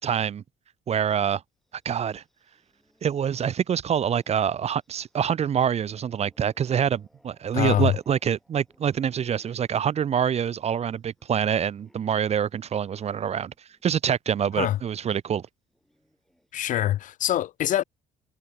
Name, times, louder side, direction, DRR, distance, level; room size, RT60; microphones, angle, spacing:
voice 1, 0.0-0.4 0.9-1.4 1.8-2.2 3.0-13.5 13.8-15.4, right 8 dB, 40° right, 0.8 m, -26 dB
sound 1, 1.6-13.9 14.3-14.4 15.5-16.7, equal, ahead, 7.1 m, -65 dB
voice 2, 7.5-8.0 14.6-14.8 16.5-17.8, left 12 dB, 50° left, 0.4 m, -24 dB
cardioid pair, 110°, 17 cm